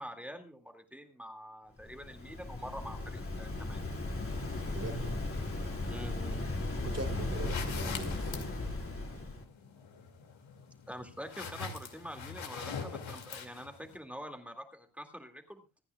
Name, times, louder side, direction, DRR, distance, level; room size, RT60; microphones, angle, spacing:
voice 1, 0.0-3.9 5.9-6.5 10.9-15.6, equal, 5° right, 5 dB, 2.2 m, -46 dB
Waves surf, 1.8-9.4, left 2 dB, 25° left, 2.4 m, -36 dB
voice 2, 4.7-5.3 6.8-8.5, right 3 dB, 30° right, 5 dB, 3.2 m, -41 dB
sound 1, 7.3-14.0, left 6 dB, 70° left, 2.4 m, -44 dB
26.0 x 9.8 x 2.3 m, 0.26 s
cardioid pair, 105°, 48 cm